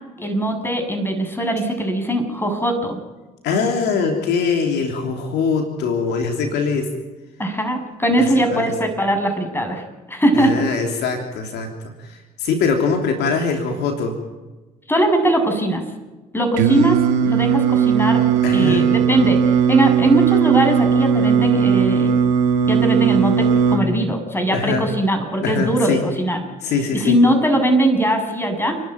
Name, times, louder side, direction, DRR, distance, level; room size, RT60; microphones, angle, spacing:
voice 1, 0.2-3.0 7.4-10.7 14.9-15.8 16.3-18.2 18.5-22.1 22.7-26.4 26.9-28.8, right 1 dB, 10° left, 5 dB, 7.3 m, -20 dB
voice 2, 3.4-6.9 8.2-8.7 10.3-11.7 12.0-14.1 18.4-18.9 24.5-24.8 25.4-26.0 26.6-27.2, left 5 dB, 70° left, 3 dB, 3.1 m, -22 dB
Singing, 16.6-23.8, right 7 dB, 75° right, 2.2 m, -17 dB
29.5 x 12.0 x 9.3 m, 1.2 s
hypercardioid pair, 55°, 18 cm